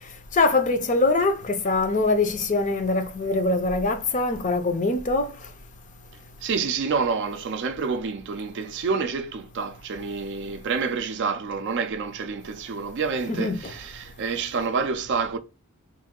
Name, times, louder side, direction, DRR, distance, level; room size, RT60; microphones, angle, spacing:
voice 1, 0.3-5.3 13.3-13.6, left 3 dB, 35° left, 0.5 m, -23 dB
voice 2, 6.4-15.4, right 5 dB, 55° right, 0.4 m, -28 dB
3.2 x 2.6 x 3.6 m
head